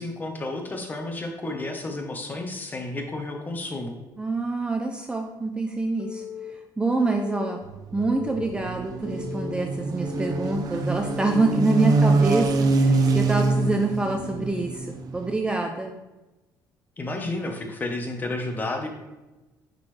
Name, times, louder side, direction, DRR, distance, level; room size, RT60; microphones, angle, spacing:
voice 1, 0.0-4.0 17.0-18.9, left 2 dB, 25° left, 3 dB, 1.1 m, -31 dB
voice 2, 4.2-7.6 7.9-15.9, right 3 dB, 10° right, 3 dB, 0.5 m, -26 dB
Telephone, 6.0-6.5 7.0-7.5 8.0-8.5 9.0-9.5 10.0-10.5 11.0-11.6 12.0-12.6 13.1-13.6, left 8 dB, 50° left, 0.7 m, -38 dB
sound 1, 7.6-15.3, right 3 dB, 55° right, 0.7 m, -25 dB
9.8 x 4.0 x 3.3 m, 1.1 s
cardioid pair, 130°, 8 cm